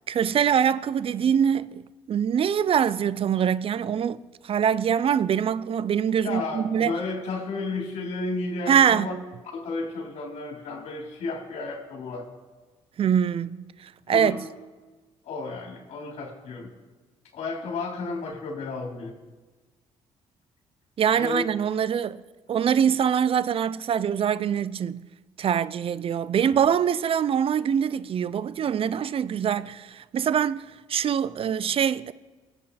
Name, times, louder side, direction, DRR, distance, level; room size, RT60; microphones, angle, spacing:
voice 1, 0.1-4.2 4.4-6.9 8.7-9.1 13.0-14.4 21.0-22.2 22.5-25.1 25.4-32.1, right 8 dB, 50° right, 0.6 m, -24 dB
voice 2, 6.2-9.1 9.5-12.3 14.1-14.4 15.3-16.7 17.3-19.2 21.1-21.4, left 3 dB, 65° left, 3.8 m, -32 dB
21.0 x 8.1 x 4.2 m
supercardioid pair, 65°, 12 cm